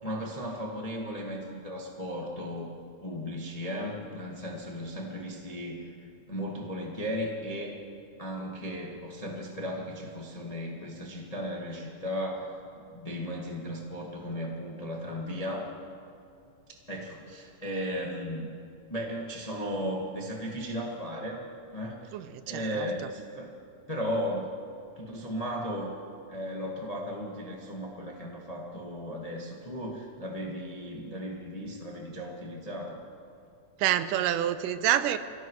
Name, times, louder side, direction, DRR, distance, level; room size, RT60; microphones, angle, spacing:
voice 1, 0.0-2.7 3.0-5.9 6.3-7.7 8.2-12.6 12.9-15.7 16.9-18.5 18.9-21.5 21.7-22.1 22.5-23.5 23.9-24.5 25.0-25.9 26.3-33.0, equal, 35° left, -2 dB, 0.5 m, -35 dB
voice 2, 22.1-22.9 33.8-35.2, right 11 dB, 85° right, 12 dB, 2.2 m, -27 dB
25.0 x 16.5 x 3.1 m, 2.6 s
omnidirectional pair, 3.7 m